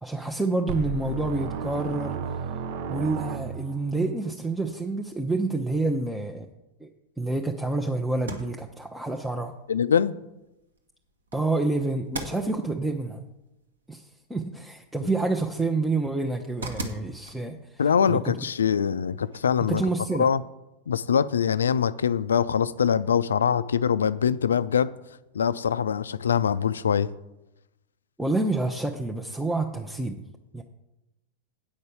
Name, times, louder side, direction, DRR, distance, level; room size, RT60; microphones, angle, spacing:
voice 1, 0.0-2.2 2.9-6.5 6.8-6.9 7.2-9.5 11.3-13.2 13.9-17.6 18.1-18.3 19.6-20.3 28.2-30.1 30.5-30.6, right 2 dB, 5° right, 0.7 m, -28 dB
sound 1, 0.7-3.9, right 5 dB, 50° right, 0.6 m, -33 dB
sound 2, 8.1-19.8, right 2 dB, 70° right, 1.4 m, -44 dB
voice 2, 9.7-10.2 15.0-15.1 17.8-19.8 20.2-20.4 20.9-24.9 25.3-27.1, left 7 dB, 70° left, 0.3 m, -23 dB
8.6 x 5.4 x 7.8 m
figure-of-eight pair, 90°, 0 cm